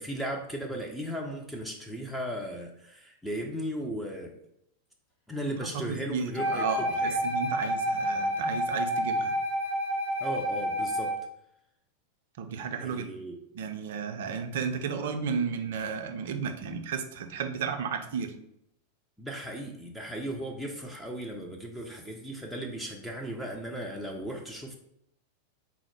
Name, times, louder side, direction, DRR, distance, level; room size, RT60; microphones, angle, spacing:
voice 1, 0.0-4.4 5.3-7.2 9.1-9.2 10.2-11.1 12.8-13.4 19.2-24.8, right 1 dB, ahead, 0 dB, 0.5 m, -36 dB
voice 2, 5.6-9.3 12.4-13.1 13.5-18.3, right 6 dB, 55° right, 6 dB, 0.5 m, -33 dB
Wind instrument woodwind instrument, 6.4-11.3, equal, 40° left, 1.1 m, -29 dB
4.0 x 2.1 x 4.4 m, 0.78 s
figure-of-eight pair, 90°, 0 cm